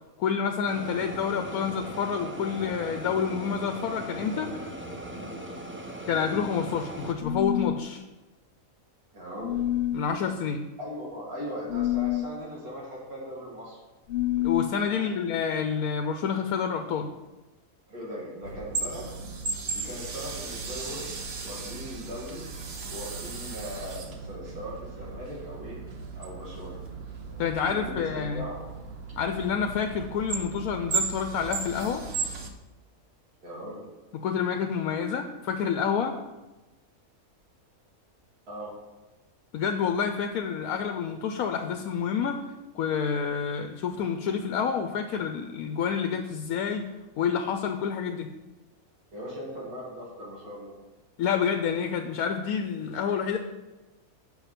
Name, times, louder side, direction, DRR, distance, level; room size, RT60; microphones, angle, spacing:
voice 1, 0.2-4.5 6.1-8.0 9.9-10.6 14.4-17.1 27.4-28.4 29.2-32.0 34.1-36.2 39.5-42.4 42.7-46.9 47.2-48.3 51.2-53.4, left 7 dB, 80° left, 6 dB, 1.1 m, -28 dB
sound 1, 0.7-7.1, right 1 dB, 10° right, 0.7 m, -39 dB
sound 2, 7.2-7.8 9.4-10.1 11.7-12.3 14.1-14.7, left 13 dB, 55° left, 0.6 m, -27 dB
voice 2, 9.1-9.6 10.8-13.8 14.8-15.1 17.9-19.1 19.7-21.1 21.4-22.4 22.9-25.8 26.2-26.8 27.6-28.6 33.4-33.9 38.5-38.7 49.1-50.7, equal, 85° right, -5 dB, 2.8 m, -39 dB
sound 3, 18.4-32.5, right 5 dB, 50° right, 1.0 m, -36 dB
7.1 x 5.8 x 5.8 m, 1.1 s
omnidirectional pair, 1.5 m